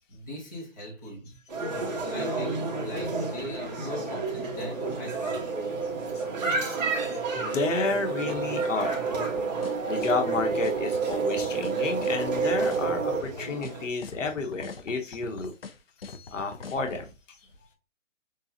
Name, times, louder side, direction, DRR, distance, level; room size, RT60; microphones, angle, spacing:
voice 1, 0.1-1.4 2.1-5.5, equal, 15° left, 0.8 m, -40 dB
sound 1, 1.5-13.9, right 2 dB, 30° right, 1.3 m, -33 dB
sound 2, 4.6-13.2, right 6 dB, 80° right, 0.7 m, -30 dB
voice 2, 7.4-9.0 9.9-15.5 16.0-17.4, left 4 dB, 70° left, 1.1 m, -31 dB
sound 3, 9.1-17.0, left 4 dB, 45° left, 0.6 m, -42 dB
6.7 x 2.3 x 2.8 m
hypercardioid pair, 170°, 39 cm